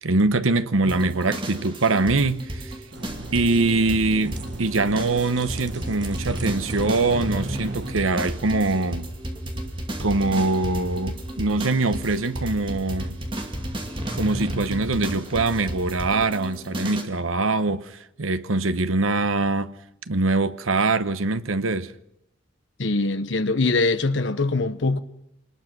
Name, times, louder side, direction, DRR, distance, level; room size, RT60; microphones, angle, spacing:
voice 1, 0.0-2.8 3.3-9.1 10.0-13.2 14.1-19.7 20.1-21.9, right 3 dB, 85° right, 1.0 m, -23 dB
sound 1, 0.8-17.0, right 1 dB, 25° right, 2.3 m, -32 dB
sound 2, 2.9-7.9, right 2 dB, 60° right, 1.5 m, -37 dB
voice 2, 22.8-25.0, left 3 dB, 65° left, 1.0 m, -22 dB
26.0 x 20.0 x 6.1 m
head